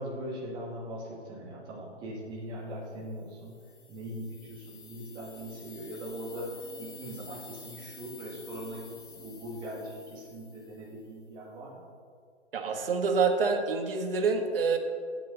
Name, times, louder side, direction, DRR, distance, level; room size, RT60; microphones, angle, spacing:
voice 1, 0.0-3.5 3.9-6.5 6.8-8.8 9.1-11.9, right 1 dB, 15° right, -4 dB, 1.9 m, -40 dB
sound 1, 3.2-11.1, left 3 dB, 15° left, 1.2 m, -50 dB
voice 2, 12.5-14.8, right 4 dB, 55° right, 4 dB, 1.6 m, -27 dB
16.5 x 8.7 x 3.9 m, 2.1 s
hypercardioid pair, 165°, 34 cm